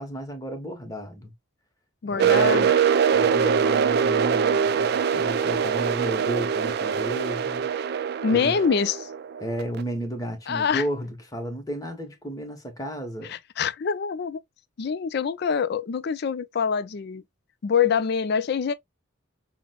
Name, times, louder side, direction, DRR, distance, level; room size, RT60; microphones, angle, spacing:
voice 1, 0.0-1.3 2.0-2.7 3.1-7.6 8.3-8.6 9.4-13.3, right 1 dB, 15° left, 0.9 m, -33 dB
voice 2, 2.0-2.7 8.2-9.1 10.5-10.8 13.3-14.4 14.8-17.2 17.6-18.7, left 6 dB, 50° left, 0.4 m, -25 dB
sound 1, 2.2-9.8, right 7 dB, 50° right, 0.3 m, -23 dB
5.8 x 2.1 x 2.3 m
head